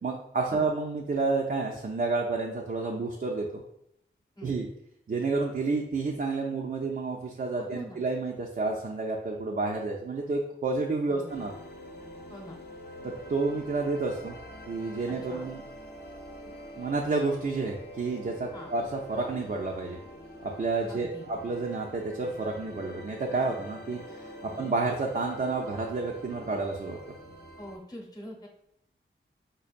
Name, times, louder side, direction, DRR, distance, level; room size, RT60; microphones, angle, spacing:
voice 1, 0.0-3.6 4.4-4.7 5.1-11.5 13.3-14.4 14.7-15.6 16.8-20.0 20.4-27.0, right 3 dB, 45° right, -1 dB, 0.4 m, -30 dB
voice 2, 7.6-8.0 11.1-11.5 12.3-12.6 15.1-15.5 18.5-18.7 20.9-21.3 24.5-24.7 27.6-28.5, left 1 dB, 20° left, 0 dB, 0.9 m, -45 dB
sound 1, 11.3-27.8, equal, 50° left, 0.6 m, -46 dB
5.2 x 2.2 x 2.5 m, 0.74 s
wide cardioid pair, 80°, 21 cm